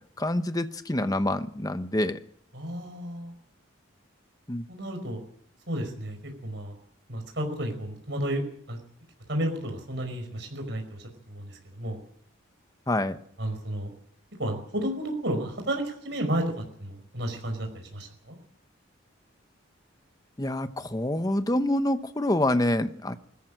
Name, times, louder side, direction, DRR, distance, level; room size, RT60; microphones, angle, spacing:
voice 1, 0.2-2.2 4.5-4.7 12.9-13.2 20.4-23.2, left 1 dB, 20° left, 10 dB, 0.9 m, -26 dB
voice 2, 2.5-3.3 4.7-5.2 5.7-6.2 6.4-6.8 7.1-8.4 8.7-8.8 9.3-12.0 13.4-13.9 14.4-16.5 16.8-18.4, right 1 dB, 60° right, 3 dB, 5.2 m, -32 dB
21.0 x 14.0 x 8.9 m, 0.67 s
head